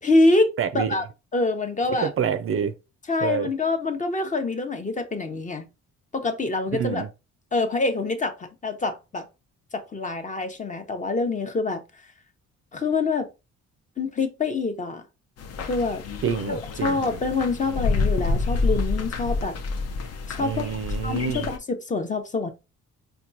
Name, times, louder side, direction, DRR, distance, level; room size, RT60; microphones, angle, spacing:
voice 1, 0.0-0.5 0.7-1.0 1.3-2.1 3.1-5.7 6.1-7.0 7.5-9.3 9.7-11.8 12.7-13.3 14.0-15.0 15.6-16.0 16.5-19.6 20.3-20.7 21.0-22.5, left 3 dB, 25° left, 0.7 m, -25 dB
voice 2, 0.6-1.0 2.0-2.7 3.2-3.5 6.7-7.1 16.2-17.0 20.4-21.5, right 8 dB, 45° right, 0.4 m, -27 dB
sound 1, 15.4-21.6, left 3 dB, 55° left, 0.7 m, -28 dB
4.4 x 2.3 x 2.6 m
cardioid pair, 90°, 30 cm